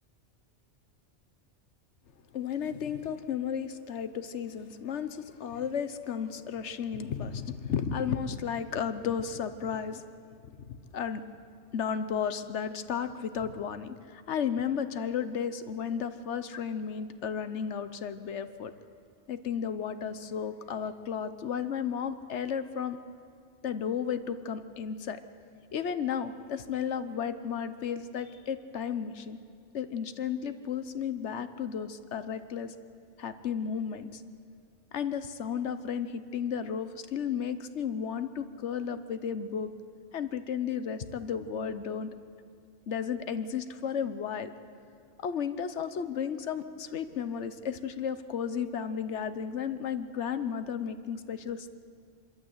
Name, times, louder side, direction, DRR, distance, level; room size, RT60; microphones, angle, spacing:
voice 1, 2.3-10.0 10.7-11.2 11.7-18.7 19.3-23.0 23.6-25.2 25.7-29.4 29.7-32.7 33.2-34.2 34.9-39.7 40.1-42.1 42.9-44.5 45.2-51.7, left 7 dB, 65° left, 11 dB, 1.2 m, -33 dB
25.5 x 12.5 x 8.0 m, 2.3 s
omnidirectional pair, 1.3 m